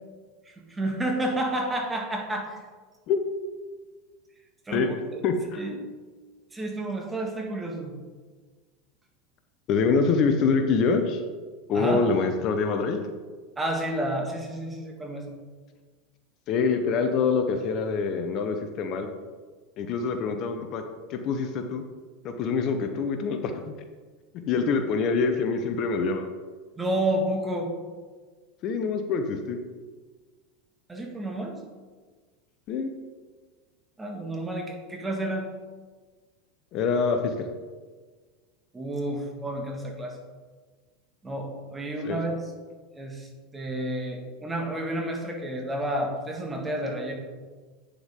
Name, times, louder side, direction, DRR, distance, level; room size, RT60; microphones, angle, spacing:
voice 1, 0.7-2.6 4.7-5.2 5.6-5.8 6.5-7.9 11.7-12.0 13.6-15.3 26.8-27.7 30.9-31.6 34.0-35.5 38.7-40.2 41.2-42.3 42.9-47.2, right 1 dB, 15° right, 1 dB, 1.8 m, -30 dB
voice 2, 5.2-5.7 9.7-11.2 11.7-13.0 16.5-19.1 19.8-20.8 21.1-21.8 22.2-23.6 24.5-26.3 28.6-29.6 32.7-32.9 36.7-37.5 42.0-42.2, left 5 dB, 45° left, 6 dB, 0.9 m, -25 dB
9.2 x 6.9 x 3.7 m, 1.4 s
supercardioid pair, 115°, 0 cm